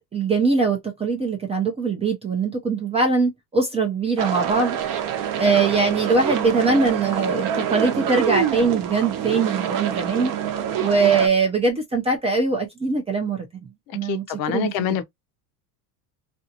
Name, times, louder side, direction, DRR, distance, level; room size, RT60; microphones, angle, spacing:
voice 1, 0.1-4.8 5.4-10.3 10.8-13.5 13.9-15.0, right 4 dB, 15° right, 0.4 m, -22 dB
sound 1, 4.2-11.3, right 9 dB, 45° right, 0.7 m, -26 dB
voice 2, 14.0-15.0, left 10 dB, 55° left, 0.6 m, -26 dB
2.5 x 2.4 x 2.6 m
supercardioid pair, 130°, 45 cm